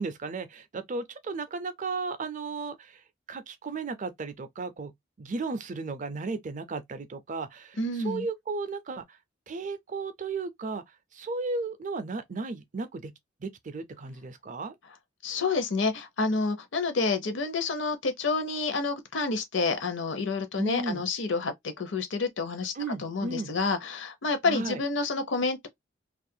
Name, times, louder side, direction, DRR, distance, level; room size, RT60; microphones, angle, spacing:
voice 1, 0.0-7.8 8.0-9.2 9.5-10.8 11.1-13.1 13.4-14.7 20.6-21.0 22.8-23.5 24.4-24.8, right 3 dB, 40° right, 0.4 m, -34 dB
voice 2, 7.8-8.3 15.2-22.7 23.0-25.7, left 3 dB, 65° left, 0.7 m, -29 dB
2.4 x 2.2 x 2.6 m
head